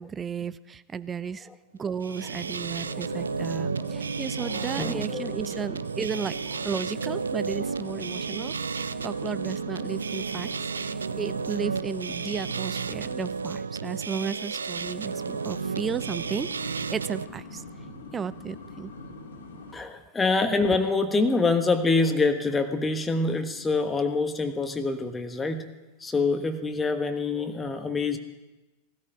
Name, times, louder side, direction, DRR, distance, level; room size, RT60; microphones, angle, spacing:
voice 1, 0.0-1.5 1.8-6.4 6.6-10.5 10.8-17.6 18.1-18.9, right 6 dB, 20° right, 16 dB, 0.5 m, -34 dB
sound 1, 1.9-17.3, right 5 dB, 75° right, 0.4 m, -32 dB
sound 2, 2.4-13.6 14.6-19.8, left 3 dB, 65° left, 2.1 m, -44 dB
voice 2, 2.8-3.3 3.8-4.0 4.3-5.3 19.7-25.7 26.0-28.2, left 3 dB, 15° left, 7 dB, 1.3 m, -26 dB
18.5 x 13.0 x 4.8 m, 1.1 s
figure-of-eight pair, 90°, 0 cm